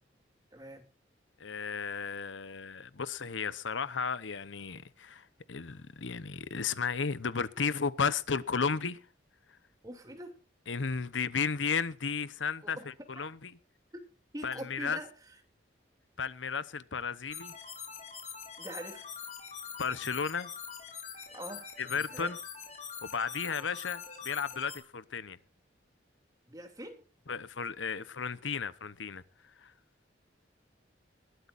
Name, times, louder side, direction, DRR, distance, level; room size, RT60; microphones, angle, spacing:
voice 1, 0.5-0.9 9.8-10.4 12.6-12.9 13.1-13.3 13.9-14.0 14.3-15.4 18.6-19.1 21.3-21.7 22.0-22.4 26.5-27.0, right 1 dB, 20° right, 2.8 m, -44 dB
voice 2, 1.4-9.0 10.7-13.6 14.4-15.0 16.2-17.5 19.8-20.5 21.8-22.4 23.0-25.4 27.3-29.2 29.6-29.7, left 5 dB, 85° left, 0.9 m, -34 dB
sound 1, 17.3-24.8, left 7 dB, 35° left, 3.5 m, -44 dB
21.0 x 12.5 x 2.6 m
head